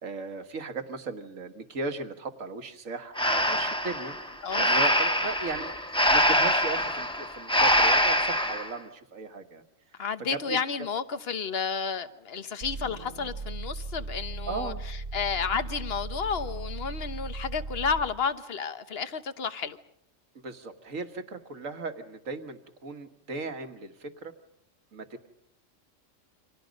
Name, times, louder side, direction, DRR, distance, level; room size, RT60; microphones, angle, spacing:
voice 1, 0.0-4.1 4.6-9.6 10.3-10.6 14.5-14.8 20.4-24.3 24.9-25.3, right 3 dB, 85° right, 1.9 m, -37 dB
Breathing, 3.2-8.7, equal, 5° left, 1.2 m, -24 dB
voice 2, 10.0-19.8, left 6 dB, 50° left, 1.3 m, -31 dB
sound 1, 12.6-18.2, right 3 dB, 50° right, 1.3 m, -37 dB
29.5 x 25.5 x 5.3 m
omnidirectional pair, 1.3 m